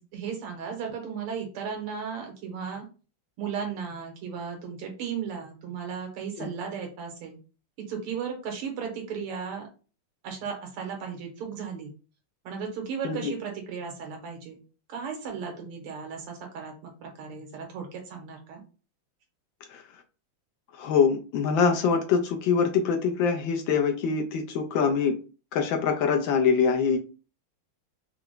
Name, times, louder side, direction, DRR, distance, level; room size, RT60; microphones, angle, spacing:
voice 1, 0.0-2.8 3.4-7.4 7.9-9.7 10.2-11.9 12.4-14.6 14.9-18.6, right 6 dB, 90° right, 3 dB, 2.0 m, -35 dB
voice 2, 20.8-25.2 25.5-27.0, left 6 dB, 70° left, 3 dB, 1.2 m, -24 dB
4.5 x 2.1 x 3.7 m, 0.35 s
omnidirectional pair, 2.4 m